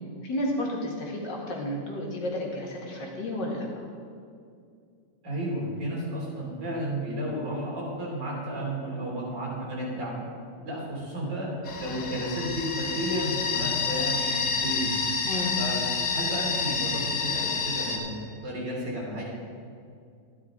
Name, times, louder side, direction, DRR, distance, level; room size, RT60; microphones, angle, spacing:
voice 1, 0.2-3.9 15.2-15.6, left 1 dB, 75° left, -2 dB, 2.5 m, -32 dB
voice 2, 5.2-10.1 10.7-11.5 11.8-14.9 15.6-15.8 16.1-19.2, right 1 dB, 75° right, -5 dB, 4.0 m, -32 dB
sound 1, 11.6-18.0, left 5 dB, 60° left, 1.8 m, -29 dB
12.5 x 11.5 x 3.8 m, 2.3 s
omnidirectional pair, 2.0 m